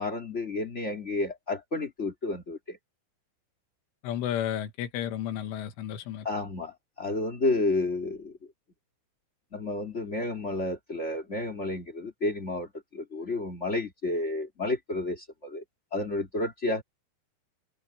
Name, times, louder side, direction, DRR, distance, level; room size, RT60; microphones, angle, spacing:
voice 1, 0.0-2.8 6.2-8.3 9.5-15.6 15.9-16.8, left 2 dB, 45° left, 0.8 m, -31 dB
voice 2, 4.0-6.3, left 10 dB, 85° left, 4.2 m, -32 dB
omnidirectional pair, 5.5 m